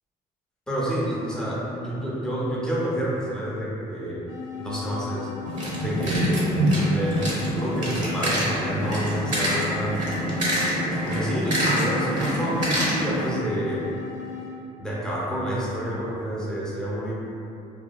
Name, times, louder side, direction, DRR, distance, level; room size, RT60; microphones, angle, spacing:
voice 1, 0.7-4.2 4.6-5.4 5.7-10.1 11.0-13.9 14.8-17.1, equal, 5° left, -7 dB, 0.6 m, -29 dB
sound 1, 4.3-14.6, left 9 dB, 80° left, 0.4 m, -37 dB
sound 2, 5.5-13.3, right 1 dB, 45° right, 0.8 m, -25 dB
2.8 x 2.2 x 2.2 m, 2.8 s
cardioid pair, 110°, 17 cm